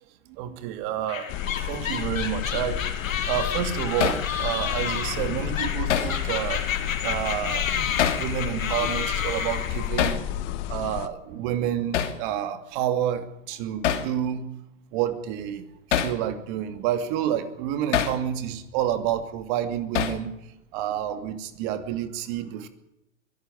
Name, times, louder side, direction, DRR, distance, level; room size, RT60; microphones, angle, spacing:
voice 1, 0.4-1.3 1.7-2.8 3.3-6.6 7.0-7.7 8.2-10.2 10.7-14.4 14.9-20.3 20.7-22.7, right 10 dB, 35° right, 9 dB, 2.6 m, -29 dB
sound 1, 1.1-10.1, left 7 dB, 80° left, 4.2 m, -31 dB
sound 2, 1.3-11.1, left 12 dB, 30° left, 1.2 m, -31 dB
Hammer, 4.0-4.3 5.9-6.2 8.0-8.3 10.0-10.2 11.9-12.2 13.8-14.1 15.9-16.2 17.9-18.2 19.9-20.3, left 9 dB, 60° left, 2.8 m, -24 dB
23.5 x 12.5 x 10.0 m, 0.86 s
hypercardioid pair, 145°, 39 cm